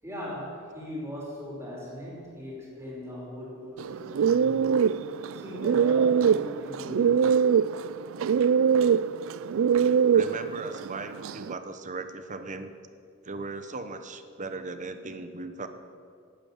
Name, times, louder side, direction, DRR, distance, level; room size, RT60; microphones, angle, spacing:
voice 1, 0.0-5.0 5.3-7.3 9.4-9.5, equal, 15° right, -4 dB, 5.0 m, -39 dB
sound 1, 3.8-11.5, right 7 dB, 70° right, 0.3 m, -23 dB
voice 2, 10.1-12.7 13.2-15.7, right 3 dB, 35° right, 9 dB, 1.0 m, -37 dB
12.0 x 11.0 x 9.2 m, 2.3 s
head